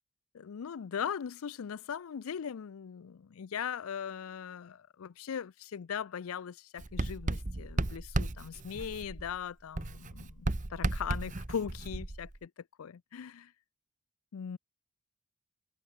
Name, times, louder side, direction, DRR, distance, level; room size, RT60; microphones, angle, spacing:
voice 1, 0.3-12.5 12.8-13.5 14.3-14.6, left 7 dB, 80° left, 0.4 m, -39 dB
Writing, 6.8-9.4 9.7-12.4, right 2 dB, 35° right, 1.0 m, -35 dB
head